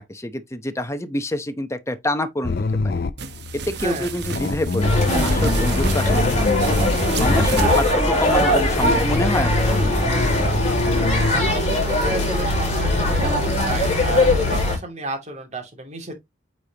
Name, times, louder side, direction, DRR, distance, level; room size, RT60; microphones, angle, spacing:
voice 1, 0.0-2.9 3.6-6.4 7.2-9.7, left 1 dB, 15° left, 0.8 m, -27 dB
sound 1, 2.4-7.8 8.0-11.3, left 3 dB, 55° left, 0.5 m, -25 dB
Clothes Moving, 3.2-7.9, right 5 dB, 55° right, 1.0 m, -32 dB
sound 2, 4.8-14.8, left 1 dB, 35° left, 4.8 m, -20 dB
voice 2, 7.6-8.0 10.9-16.1, right 2 dB, 35° right, 2.6 m, -31 dB
9.0 x 4.9 x 2.9 m
head